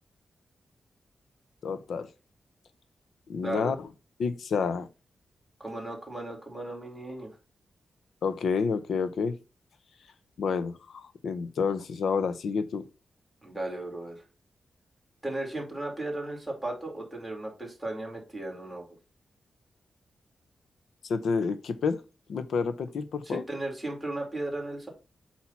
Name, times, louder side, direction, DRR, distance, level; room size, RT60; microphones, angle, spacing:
voice 1, 1.6-2.1 3.3-3.9 4.2-4.9 8.2-9.4 10.4-12.8 21.1-22.0 22.3-23.4, left 5 dB, 80° left, 0.8 m, -29 dB
voice 2, 3.4-3.7 5.6-7.3 13.4-14.2 15.2-18.9 23.2-24.9, right 2 dB, 5° right, 2.9 m, -35 dB
8.5 x 2.8 x 5.8 m
wide cardioid pair, 140°, 0 cm